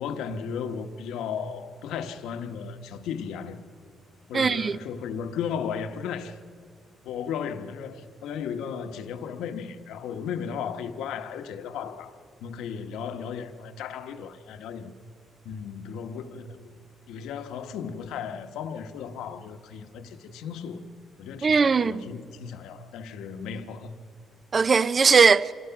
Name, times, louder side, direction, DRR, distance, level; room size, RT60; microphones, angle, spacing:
voice 1, 0.0-3.6 4.3-6.4 7.0-12.2 12.4-14.9 15.4-16.7 17.1-20.8 21.2-23.9, left 7 dB, 90° left, 1.2 m, -35 dB
voice 2, 4.3-4.8 21.4-22.0 24.5-25.5, right 5 dB, 40° right, 0.5 m, -19 dB
26.5 x 18.0 x 5.9 m
cardioid pair, 90°, 0 cm